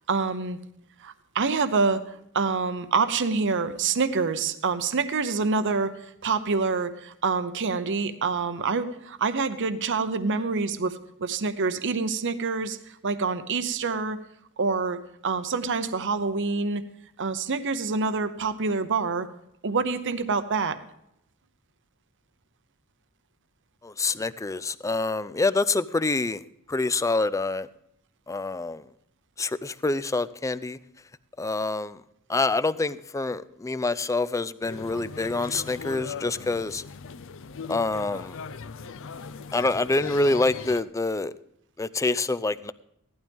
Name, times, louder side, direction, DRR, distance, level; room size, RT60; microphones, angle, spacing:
voice 1, 0.1-0.6 1.0-2.0 2.3-5.9 6.2-14.2 14.6-16.8 17.2-19.3 19.6-20.8, right 4 dB, 55° right, 11 dB, 0.8 m, -26 dB
voice 2, 23.8-26.4 26.7-27.7 28.3-28.9 29.4-30.8 31.4-32.0 32.3-36.8 37.7-38.4 39.5-41.3 41.8-42.7, left 3 dB, 15° left, 15 dB, 0.4 m, -26 dB
sound 1, 34.6-40.8, left 5 dB, 60° left, 0.6 m, -39 dB
16.0 x 12.0 x 3.6 m, 0.76 s
head